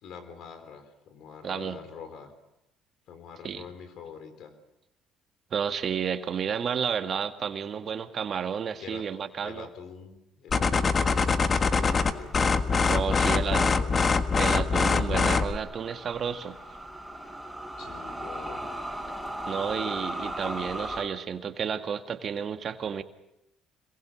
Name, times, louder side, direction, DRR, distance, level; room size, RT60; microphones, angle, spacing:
voice 1, 0.0-2.3 3.1-4.5 8.8-9.1 9.4-12.4 13.0-14.0 17.8-18.7, left 6 dB, 65° left, 9 dB, 4.3 m, -45 dB
voice 2, 1.4-1.8 3.4-3.6 5.5-9.7 12.9-13.7 14.4-16.6 19.5-23.0, right 7 dB, 50° right, 8 dB, 1.7 m, -31 dB
sound 1, 10.5-15.6, left 4 dB, 40° left, 1.5 m, -24 dB
sound 2, 10.8-21.0, right 1 dB, ahead, 7.2 m, -39 dB
26.0 x 22.0 x 6.4 m, 0.86 s
supercardioid pair, 80°, 0 cm